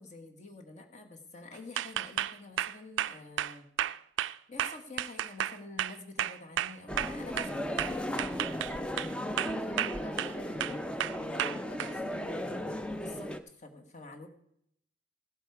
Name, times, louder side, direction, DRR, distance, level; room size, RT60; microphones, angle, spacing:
voice 1, 0.0-3.7 4.5-8.1 9.9-10.4 12.9-14.3, left 3 dB, 40° left, 4 dB, 1.4 m, -48 dB
sound 1, 1.8-7.5 7.8-9.1 9.4-10.3 10.6-11.9, right 11 dB, 75° right, 0.3 m, -32 dB
sound 2, 6.9-13.4, equal, 5° left, 0.4 m, -36 dB
voice 2, 9.5-10.7 11.2-12.5, left 2 dB, 55° left, 6 dB, 0.7 m, -49 dB
15.5 x 7.8 x 4.7 m, 0.73 s
head